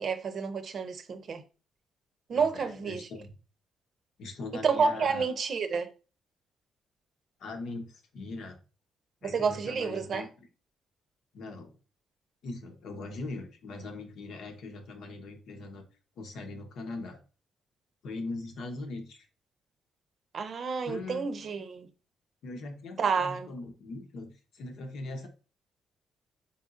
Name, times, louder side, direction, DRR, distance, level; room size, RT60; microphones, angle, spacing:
voice 1, 0.0-1.4 2.3-3.1 4.6-5.9 9.2-10.3 20.3-21.9 23.0-23.5, right 5 dB, 55° right, 0.6 m, -29 dB
voice 2, 2.3-3.3 4.2-5.2 7.4-8.6 9.2-10.3 11.3-11.8 12.4-15.8 16.2-17.2 18.0-19.3 20.8-21.3 22.4-25.3, left 3 dB, 75° left, 1.0 m, -40 dB
4.3 x 3.7 x 2.5 m
cardioid pair, 90°, 0 cm